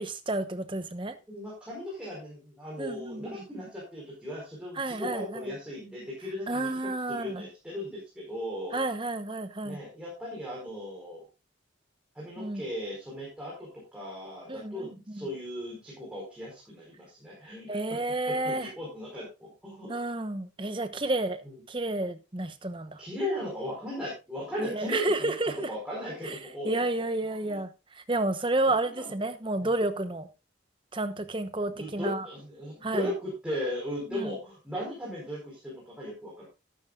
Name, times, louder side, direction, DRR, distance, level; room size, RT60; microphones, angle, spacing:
voice 1, 0.0-1.1 2.8-3.4 4.8-5.5 6.5-7.5 8.7-9.8 12.4-12.6 14.5-15.3 17.7-18.7 19.9-23.0 24.6-25.7 26.2-26.4 26.6-27.7 27.9-30.3 30.9-32.3 32.8-33.1 34.1-34.3, right 2 dB, 25° right, 0.9 m, -31 dB
voice 2, 1.3-6.7 7.1-8.8 9.6-11.2 12.1-17.7 18.3-20.0 21.4-21.6 23.0-26.8 27.4-27.6 28.7-29.2 29.6-29.7 31.6-36.4, left 1 dB, 5° right, 4.8 m, -37 dB
13.0 x 11.5 x 2.4 m
head